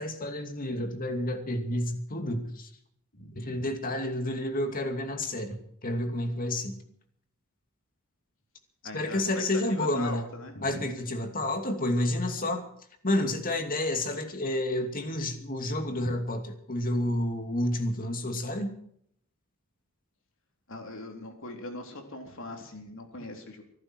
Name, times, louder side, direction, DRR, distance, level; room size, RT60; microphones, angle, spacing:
voice 1, 0.0-2.7 3.4-6.8 8.9-10.2 10.6-12.7 13.0-18.7, left 1 dB, 40° left, 6 dB, 2.6 m, -30 dB
voice 2, 3.1-3.7 8.8-9.4 9.7-10.8 20.7-23.6, left 2 dB, 65° left, 3 dB, 3.8 m, -41 dB
24.5 x 12.0 x 4.7 m, 0.67 s
head